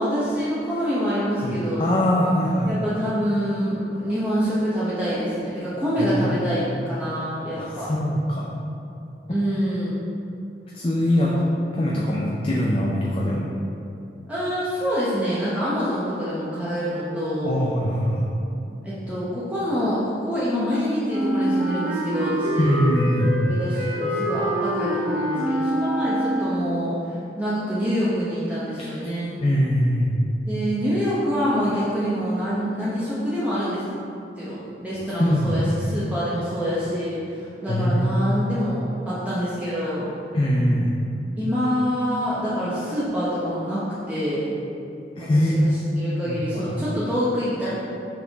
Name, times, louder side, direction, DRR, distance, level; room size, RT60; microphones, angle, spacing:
voice 1, 0.0-1.9 2.7-7.9 9.3-9.9 11.2-11.3 14.3-17.6 18.8-22.7 23.4-29.4 30.5-33.8 34.4-40.1 41.4-44.5 45.2-45.7 46.0-47.7, equal, 10° right, -10 dB, 0.8 m, -26 dB
voice 2, 1.4-2.7 6.0-6.4 7.5-8.5 10.7-11.4 11.7-13.5 17.4-18.3 22.6-23.4 28.8-28.9 29.4-30.2 35.2-35.7 37.7-38.1 40.3-40.9 45.2-45.6 46.3-47.0, equal, 30° left, -4 dB, 0.5 m, -22 dB
Wind instrument woodwind instrument, 21.0-26.8, right 1 dB, 50° right, 1.4 m, -26 dB
6.0 x 5.7 x 3.5 m, 2.7 s
head